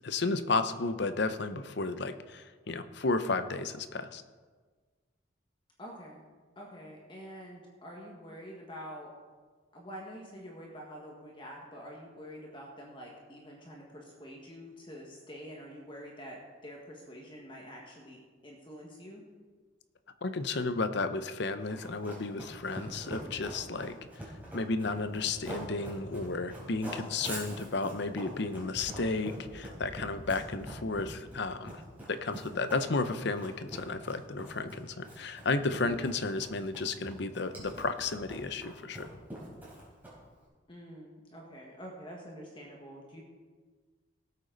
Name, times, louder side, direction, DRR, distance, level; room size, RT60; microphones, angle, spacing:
voice 1, 0.0-4.2 20.2-24.0 24.5-31.8 32.1-39.1, left 3 dB, 60° left, 10 dB, 0.8 m, -33 dB
voice 2, 5.8-6.2 6.5-9.1 9.7-19.2 40.7-43.2, equal, 25° left, -1 dB, 1.6 m, -47 dB
Run, 21.7-40.4, right 1 dB, 10° right, 4.4 m, -44 dB
18.5 x 8.3 x 4.0 m, 1.4 s
head